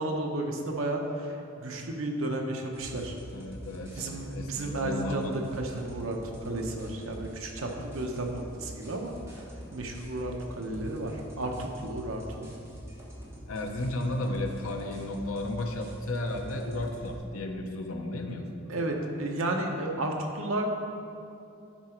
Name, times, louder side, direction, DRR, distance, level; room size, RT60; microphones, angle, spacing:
voice 1, 0.0-3.2 4.0-9.4 9.7-12.5 18.7-20.7, right 1 dB, 70° right, 2 dB, 1.0 m, -33 dB
sound 1, 2.7-17.2, equal, 15° right, 1.4 m, -45 dB
voice 2, 3.3-5.4 13.5-18.5, left 1 dB, 85° left, 3 dB, 0.8 m, -34 dB
10.0 x 4.9 x 4.5 m, 2.6 s
head